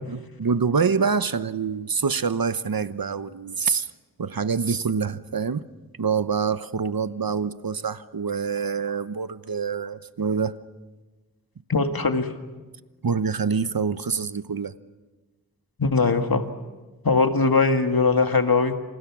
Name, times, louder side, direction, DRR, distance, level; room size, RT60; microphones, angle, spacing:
voice 1, 0.1-3.9 4.2-5.7 6.0-10.6 13.0-14.7, right 5 dB, 80° right, 13 dB, 0.9 m, -26 dB
voice 2, 11.7-12.3 15.8-16.4 17.0-18.7, left 4 dB, 80° left, 6 dB, 1.9 m, -20 dB
28.5 x 27.5 x 6.2 m, 1.2 s
wide cardioid pair, 55°, 35 cm